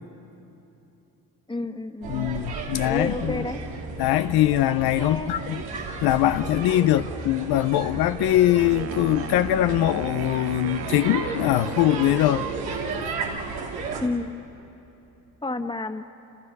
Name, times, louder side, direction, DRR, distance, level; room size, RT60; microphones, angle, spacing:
voice 1, 1.5-2.3 2.8-3.6 5.0-5.3 14.0-14.4 15.4-16.0, left 2 dB, 15° left, 1.6 m, -30 dB
sound 1, 2.0-14.1, right 4 dB, 90° right, 2.7 m, -33 dB
voice 2, 2.1-3.4 4.0-5.6 6.0-12.4, left 14 dB, 90° left, 0.7 m, -22 dB
Wind instrument woodwind instrument, 8.6-12.8, right 8 dB, 40° right, 0.8 m, -39 dB
29.5 x 29.0 x 5.4 m
cardioid pair, 80°, 36 cm